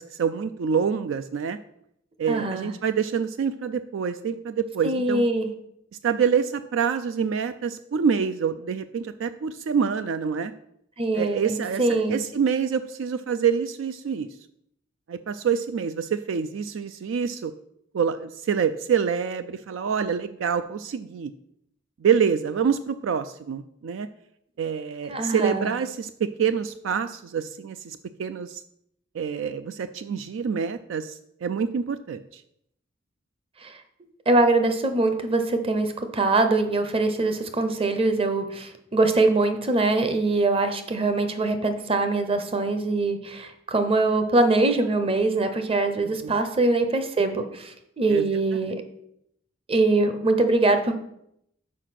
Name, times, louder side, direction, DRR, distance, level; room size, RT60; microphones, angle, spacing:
voice 1, 0.0-1.6 2.2-5.2 6.0-10.5 11.1-14.3 15.1-17.5 17.9-21.3 22.0-24.1 24.6-28.6 29.1-32.4 46.2-46.3 48.1-48.2 48.5-48.7, right 7 dB, 70° right, 11 dB, 0.3 m, -26 dB
voice 2, 2.3-2.7 4.8-5.5 11.0-12.2 25.1-25.7 33.6-33.7 34.3-48.8 49.7-50.9, right 2 dB, 30° right, 8 dB, 0.7 m, -23 dB
6.5 x 4.9 x 5.8 m, 0.76 s
head